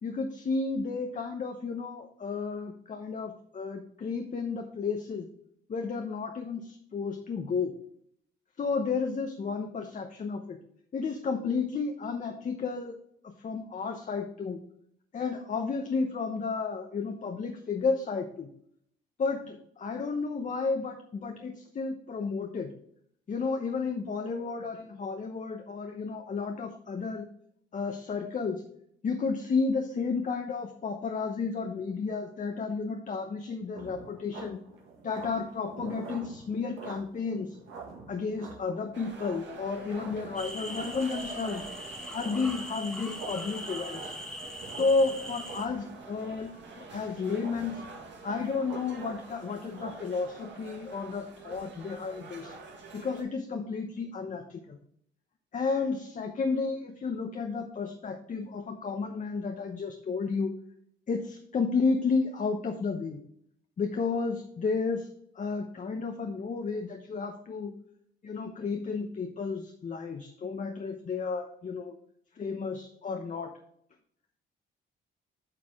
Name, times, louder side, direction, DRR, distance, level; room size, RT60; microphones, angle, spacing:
voice 1, 0.0-5.3 5.7-7.7 8.6-10.6 10.9-13.0 13.2-14.6 15.1-18.5 19.2-22.7 23.3-27.3 27.7-28.6 29.0-34.6 35.0-37.6 38.1-41.6 42.1-44.1 44.8-47.8 48.2-52.6 52.9-54.8 55.5-60.5 61.1-63.2 63.8-65.1 65.3-67.7 68.2-71.9 72.4-73.5, left 4 dB, 40° left, 4 dB, 0.8 m, -32 dB
sound 1, 33.7-49.9, right 4 dB, 85° right, 1.8 m, -47 dB
sound 2, 38.9-53.2, right 3 dB, 65° right, 2.0 m, -47 dB
sound 3, 40.4-45.7, equal, 5° left, 1.2 m, -41 dB
8.9 x 4.7 x 3.6 m, 0.69 s
cardioid pair, 90°, 20 cm